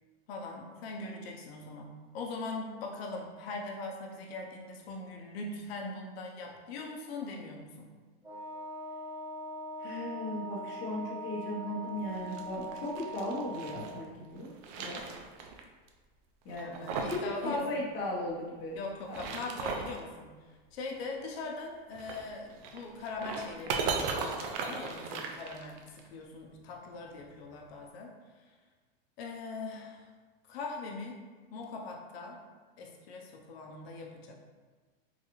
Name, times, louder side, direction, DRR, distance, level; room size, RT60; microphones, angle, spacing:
voice 1, 0.3-7.9 16.5-17.7 18.7-20.3 20.7-28.5 29.2-30.1 30.5-31.2 31.5-32.4 32.8-34.3, left 3 dB, 80° left, 1 dB, 0.8 m, -41 dB
Wind instrument woodwind instrument, 8.2-14.0, right 1 dB, 10° right, 1.0 m, -41 dB
voice 2, 9.8-14.5 14.8-15.0 16.4-16.7 17.1-18.8 19.1-19.2, left 1 dB, 40° left, -5 dB, 0.9 m, -36 dB
sound 1, 12.1-13.9 14.4-15.6 15.9-16.0 16.5-17.3 17.6-17.7 18.9-20.0 21.9-26.0, right 5 dB, 50° right, 0.4 m, -37 dB
3.9 x 2.3 x 3.0 m, 1.4 s
supercardioid pair, 145°, 30 cm